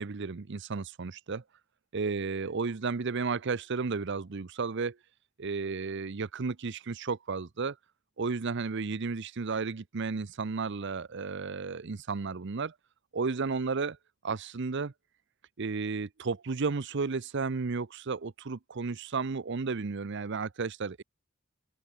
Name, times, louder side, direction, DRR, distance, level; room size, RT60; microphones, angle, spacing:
voice 1, 0.0-1.4 1.9-5.0 5.4-7.8 8.2-12.7 13.1-13.9 14.2-14.9 15.6-21.0, right 4 dB, 60° right, 0.7 m, -33 dB
open air
head